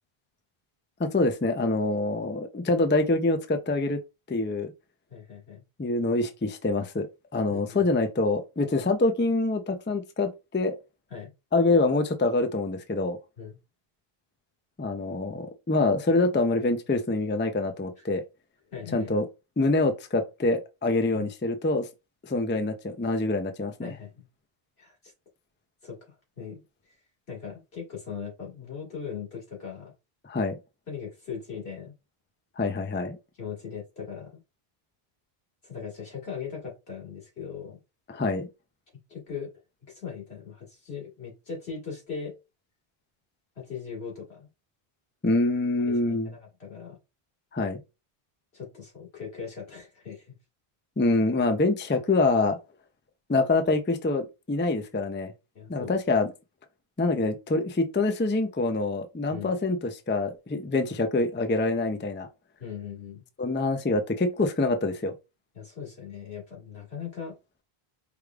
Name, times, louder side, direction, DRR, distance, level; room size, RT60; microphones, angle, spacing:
voice 1, 1.0-4.0 4.3-4.7 5.8-7.1 7.3-10.8 11.5-13.2 14.8-18.2 18.9-19.3 19.6-21.9 22.2-23.9 30.2-30.6 32.6-33.2 38.1-38.5 45.2-46.3 47.5-47.8 51.0-52.6 53.3-55.3 55.7-56.3 57.0-62.3 63.4-65.1, left 2 dB, 20° left, 0.3 m, -25 dB
voice 2, 5.1-5.6 7.5-7.9 11.1-11.3 13.4-13.6 18.0-18.1 18.7-19.1 21.1-21.3 23.8-24.3 24.8-25.1 25.8-26.6 27.3-29.9 30.9-31.9 33.4-34.4 35.6-37.8 39.1-39.5 39.9-42.3 43.6-44.5 45.9-47.0 48.5-50.3 55.5-56.0 59.3-59.5 62.6-63.2 65.5-67.4, left 6 dB, 90° left, 2.2 m, -39 dB
4.8 x 3.3 x 2.3 m
omnidirectional pair, 1.0 m